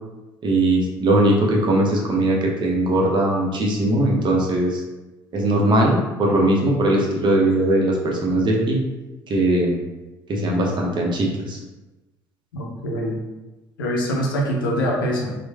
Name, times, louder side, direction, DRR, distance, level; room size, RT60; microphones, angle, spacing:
voice 1, 0.4-4.8 5.3-8.8 9.3-9.7 10.3-11.6, right 1 dB, 45° right, -1 dB, 0.7 m, -20 dB
voice 2, 12.5-13.2 13.8-15.3, equal, 85° left, -1 dB, 0.5 m, -24 dB
3.0 x 2.1 x 2.2 m, 1.1 s
hypercardioid pair, 55°, 11 cm